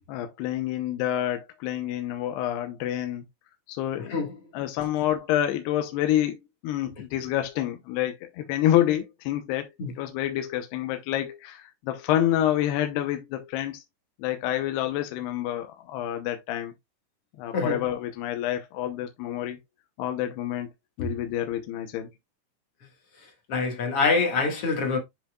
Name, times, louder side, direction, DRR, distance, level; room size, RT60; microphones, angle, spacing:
voice 1, 0.1-3.2 3.7-4.2 4.5-6.4 6.6-13.8 14.2-16.7 17.4-19.6 20.0-20.7 21.0-22.1, left 12 dB, 80° left, 2.8 m, -28 dB
voice 2, 23.5-25.0, left 4 dB, 50° left, 1.9 m, -25 dB
10.0 x 5.5 x 2.3 m
omnidirectional pair, 4.8 m